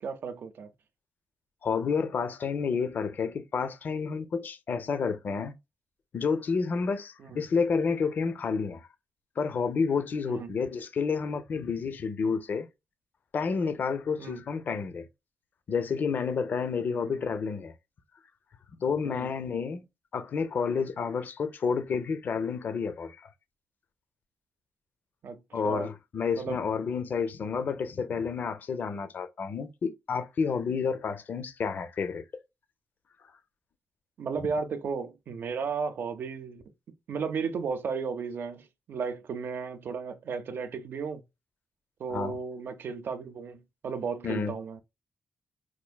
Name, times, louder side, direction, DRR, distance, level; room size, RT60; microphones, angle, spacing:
voice 1, 0.0-0.7 7.2-7.4 10.2-10.5 14.2-14.4 16.9-17.2 19.0-19.3 25.2-25.9 26.4-26.6 34.2-36.6 37.1-41.2 42.0-44.8, right 5 dB, 50° right, 0.5 m, -34 dB
voice 2, 1.6-5.5 6.1-8.9 9.4-12.7 13.3-15.1 15.7-17.7 18.8-19.8 20.1-23.3 25.5-32.2 42.1-42.4 44.2-44.5, left 5 dB, 40° left, 0.4 m, -30 dB
4.3 x 2.5 x 2.2 m
wide cardioid pair, 170°, 5 cm